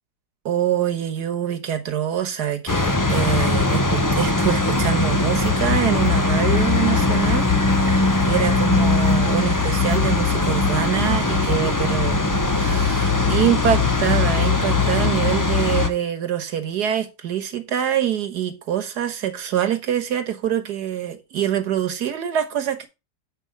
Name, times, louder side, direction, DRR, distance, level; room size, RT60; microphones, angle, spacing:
voice 1, 0.5-22.9, right 10 dB, 65° right, 1.7 m, -25 dB
sound 1, 2.7-15.9, left 3 dB, 20° left, 0.5 m, -20 dB
8.4 x 5.4 x 4.7 m
omnidirectional pair, 1.9 m